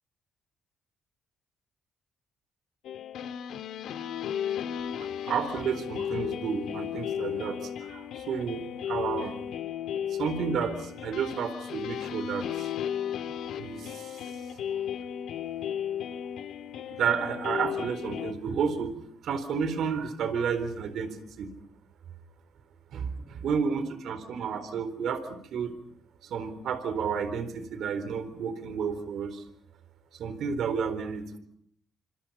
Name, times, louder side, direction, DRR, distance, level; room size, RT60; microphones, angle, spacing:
sound 1, 2.8-18.3, left 9 dB, 75° left, 1.8 m, -35 dB
voice 1, 5.0-8.6 8.9-9.4 10.0-12.7 13.6-14.8 15.4-15.5 16.9-18.9 19.2-21.5 22.9-25.7 26.2-29.5 30.1-31.4, right 6 dB, 70° right, 11 dB, 4.1 m, -31 dB
28.0 x 25.5 x 5.7 m, 0.64 s
cardioid pair, 90°, 0 cm